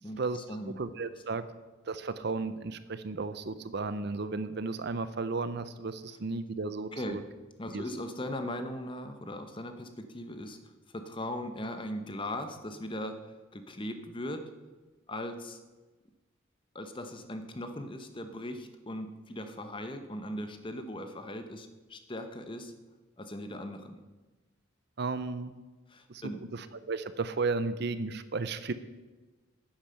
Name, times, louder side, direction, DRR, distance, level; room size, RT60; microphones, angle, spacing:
voice 1, 0.0-0.8 6.9-7.2 7.6-14.5 15.1-15.6 16.7-22.7 23.2-24.0 25.9-26.4, left 1 dB, 25° left, 8 dB, 0.9 m, -39 dB
voice 2, 0.7-1.4 1.8-7.2 7.7-7.8 25.0-25.5 26.1-28.7, right 3 dB, 55° right, 13 dB, 0.6 m, -34 dB
10.0 x 8.9 x 6.5 m, 1.2 s
head